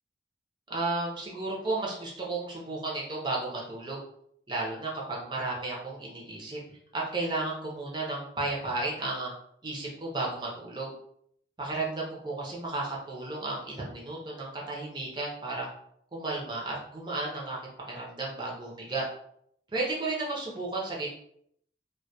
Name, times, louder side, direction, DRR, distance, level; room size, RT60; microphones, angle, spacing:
voice 1, 0.7-4.0 4.5-6.6 6.9-9.3 9.6-10.9 11.6-15.7 16.1-17.6 17.9-19.0 19.7-21.1, right 2 dB, 25° right, -3 dB, 0.5 m, -33 dB
2.2 x 2.2 x 2.6 m, 0.69 s
head